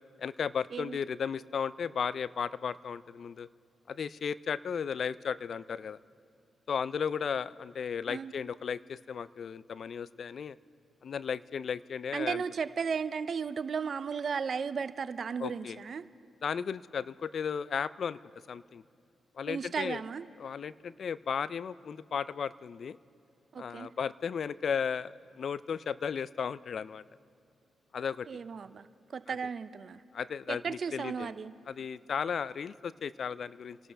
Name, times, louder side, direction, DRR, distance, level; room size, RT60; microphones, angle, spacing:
voice 1, 0.2-3.5 3.9-6.0 6.7-10.6 11.0-12.4 15.4-15.8 16.4-18.2 18.5-18.8 19.4-20.0 20.4-23.0 23.6-27.0 27.9-28.3 29.3-29.4 30.1-31.3 31.7-33.8, left 7 dB, 65° left, 18 dB, 0.4 m, -35 dB
voice 2, 12.1-16.0 19.5-20.3 23.5-23.9 28.3-30.0 30.5-31.5, right 6 dB, 60° right, 13 dB, 0.5 m, -35 dB
28.0 x 12.5 x 3.4 m, 2.4 s
supercardioid pair, 45°, 0 cm